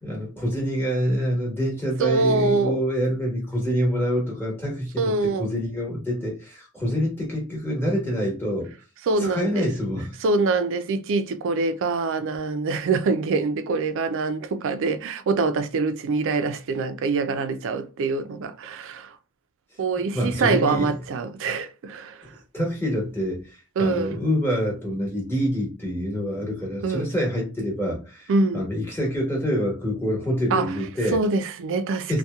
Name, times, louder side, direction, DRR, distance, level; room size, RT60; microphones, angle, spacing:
voice 1, 0.0-8.7 9.2-10.1 20.1-20.9 22.5-31.2 32.1-32.2, equal, 10° left, 1.1 m, -26 dB
voice 2, 2.0-2.8 5.0-5.5 9.1-9.7 10.2-19.2 19.8-22.3 23.8-24.1 26.8-27.1 28.3-28.6 30.5-30.7 31.1-32.2, right 3 dB, 60° right, 0.4 m, -24 dB
2.8 x 2.2 x 2.2 m
head